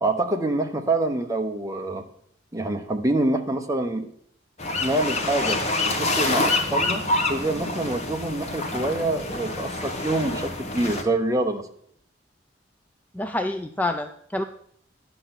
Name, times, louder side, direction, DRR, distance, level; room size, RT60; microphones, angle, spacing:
voice 1, 0.0-2.0 2.5-4.1 4.8-5.6 6.0-7.0 7.3-11.7, right 2 dB, 20° right, 5 dB, 0.9 m, -26 dB
sound 1, 4.6-11.0, left 2 dB, 35° left, 1.3 m, -27 dB
voice 2, 13.1-14.4, left 2 dB, 10° left, 6 dB, 0.4 m, -27 dB
11.0 x 6.7 x 5.9 m, 0.66 s
head